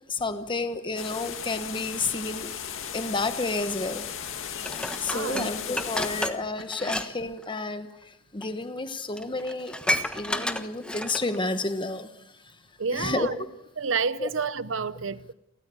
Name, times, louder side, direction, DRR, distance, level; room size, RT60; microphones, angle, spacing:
voice 1, 0.1-4.1 4.5-9.7 10.1-12.1 12.4-12.5 12.9-13.3 14.2-14.3, left 3 dB, 25° left, 1.1 m, -31 dB
sound 1, 1.0-6.3, left 8 dB, 80° left, 2.0 m, -36 dB
Dishes pots and pans, 4.6-7.1 7.4-7.6 8.4-8.5 8.9-9.0 9.2-11.4 11.8-11.9, left 1 dB, 5° left, 1.2 m, -31 dB
voice 2, 5.1-5.5 12.8-13.3 13.8-15.3, right 5 dB, 75° right, 0.8 m, -29 dB
29.5 x 14.0 x 7.0 m
head